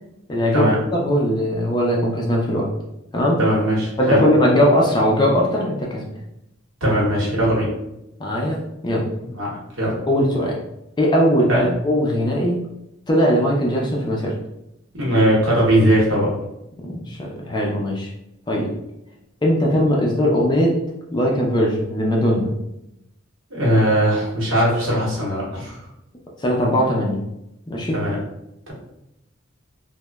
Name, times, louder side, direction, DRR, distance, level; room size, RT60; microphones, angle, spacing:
voice 1, 0.3-2.7 3.1-3.4 4.0-6.1 6.9-7.0 8.2-8.6 8.8-9.1 10.1-10.6 11.0-12.6 13.1-14.3 16.8-18.1 18.5-18.7 19.4-20.7 21.1-22.5 26.4-27.2 27.7-28.0, equal, 20° left, -2 dB, 0.4 m, -19 dB
voice 2, 3.4-4.2 6.8-7.7 9.2-9.9 11.5-11.7 14.9-16.3 23.5-25.8 27.9-28.2 28.7-28.8, right 1 dB, 75° right, -4 dB, 1.0 m, -19 dB
2.9 x 2.1 x 2.2 m, 0.86 s
head